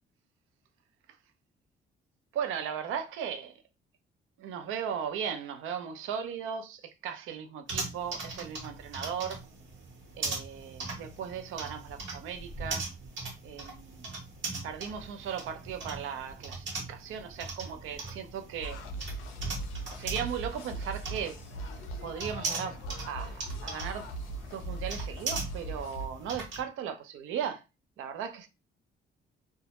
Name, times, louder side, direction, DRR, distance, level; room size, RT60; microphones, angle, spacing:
voice 1, 2.3-3.6 4.4-9.5 10.1-12.9 13.4-14.1 14.6-18.8 19.9-21.4 22.0-24.1 24.5-27.6 28.0-28.5, right 8 dB, 85° right, 0.5 m, -37 dB
sound 1, 7.7-26.6, right 3 dB, 70° right, 0.9 m, -40 dB
sound 2, 18.6-26.1, right 1 dB, 90° left, 0.4 m, -39 dB
2.1 x 2.0 x 2.8 m
cardioid pair, 90°, 20 cm